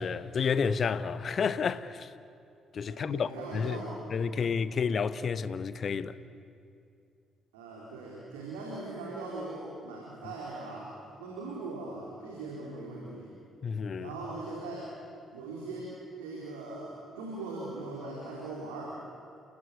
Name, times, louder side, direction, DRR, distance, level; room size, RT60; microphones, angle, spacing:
voice 1, 0.0-2.1 2.7-3.8 4.1-6.2 13.6-14.1, left 6 dB, 50° left, 1.0 m, -30 dB
voice 2, 2.9-4.4 7.5-10.9 11.2-13.3 14.0-14.9 15.3-15.9 16.2-19.0, right 2 dB, 80° right, 4.0 m, -40 dB
30.0 x 17.5 x 9.5 m
figure-of-eight pair, 45°, 0 cm